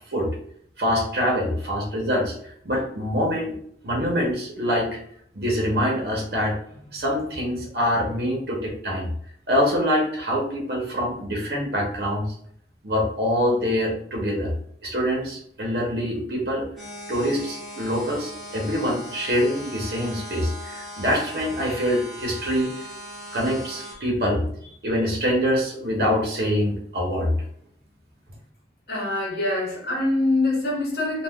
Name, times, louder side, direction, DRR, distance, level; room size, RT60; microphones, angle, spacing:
voice 1, 0.8-3.5 3.8-4.9 5.3-6.5 6.9-9.1 9.5-12.3 12.8-14.5 14.8-16.6 17.1-22.7 23.3-24.4 24.8-27.3, equal, 60° right, -2 dB, 0.8 m, -25 dB
sound 1, 16.8-23.9, equal, ahead, 0.9 m, -39 dB
voice 2, 28.9-31.2, left 2 dB, 60° left, -2 dB, 1.1 m, -24 dB
3.5 x 2.3 x 2.3 m, 0.65 s
head